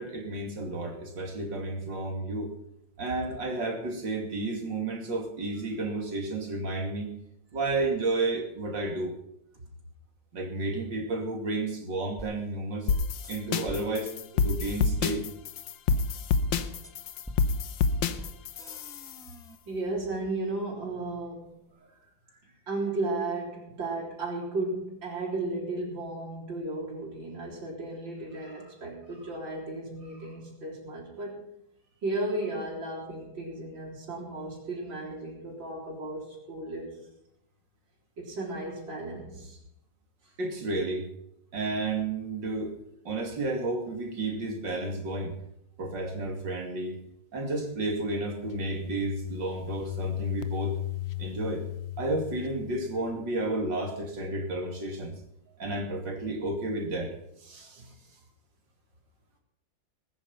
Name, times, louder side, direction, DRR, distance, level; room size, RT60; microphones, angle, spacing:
voice 1, 0.0-2.5 3.0-7.1 7.5-9.2 10.3-12.9 13.3-15.2 40.4-41.1 41.5-42.7 43.0-45.4 45.8-47.0 47.3-50.7 51.2-51.7 52.0-55.1 55.6-57.9, right 2 dB, 70° right, 3 dB, 3.2 m, -32 dB
sound 1, 12.2-12.3 12.9-13.3 13.7-13.8 14.6-14.7 15.0-15.2 15.9-16.0 16.5-16.9 17.2-17.4 18.2-18.3 18.6-19.6, left 1 dB, ahead, 1.3 m, -41 dB
sound 2, 12.9-19.2, left 5 dB, 85° left, 1.6 m, -28 dB
voice 2, 19.7-21.5 22.4-31.4 32.0-37.0 38.2-39.6 40.2-40.3 55.5-55.6, right 2 dB, 85° right, -5 dB, 4.5 m, -34 dB
sound 3, 47.8-53.4, left 16 dB, 55° left, 0.7 m, -37 dB
20.0 x 9.9 x 5.6 m, 0.80 s
omnidirectional pair, 2.0 m